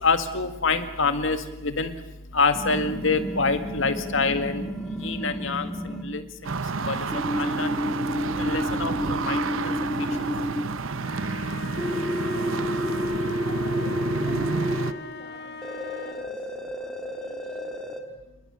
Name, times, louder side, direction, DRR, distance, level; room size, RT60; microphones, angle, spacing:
voice 1, 0.0-1.9 2.3-4.7 5.0-6.2 6.9-7.7 8.4-9.7 10.0-10.1, left 4 dB, 65° left, 8 dB, 2.0 m, -26 dB
sound 1, 2.5-6.0 7.1-10.6 11.8-14.9 15.6-18.0, equal, 5° left, 2.4 m, -30 dB
sound 2, 6.4-14.9, right 4 dB, 75° right, 0.9 m, -30 dB
voice 2, 10.2-18.5, equal, 25° left, -3 dB, 5.4 m, -49 dB
sound 3, 10.9-16.4, left 3 dB, 50° left, 0.9 m, -40 dB
28.0 x 23.0 x 6.9 m, 1.0 s
head